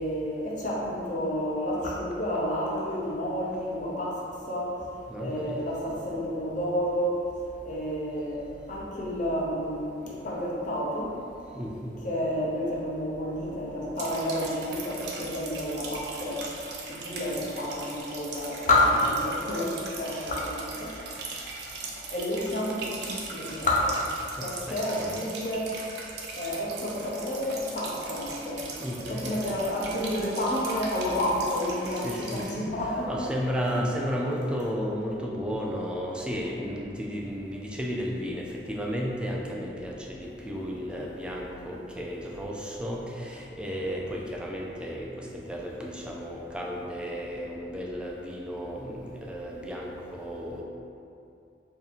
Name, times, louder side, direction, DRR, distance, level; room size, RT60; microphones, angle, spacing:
voice 1, 0.0-4.2 4.5-4.7 5.2-7.2 7.6-11.1 12.0-16.5 16.9-20.9 22.1-24.0 24.4-25.7 26.4-28.7 29.0-33.3 33.6-33.9 37.9-38.0 40.6-40.7, left 1 dB, 45° left, -5 dB, 0.7 m, -30 dB
voice 2, 5.1-5.6 11.6-11.9 24.4-25.1 28.8-29.3 31.9-32.7 33.1-50.6, equal, 5° right, -2 dB, 0.3 m, -33 dB
sound 1, 14.0-32.5, right 4 dB, 65° right, 0.5 m, -40 dB
2.7 x 2.6 x 4.1 m, 2.5 s
head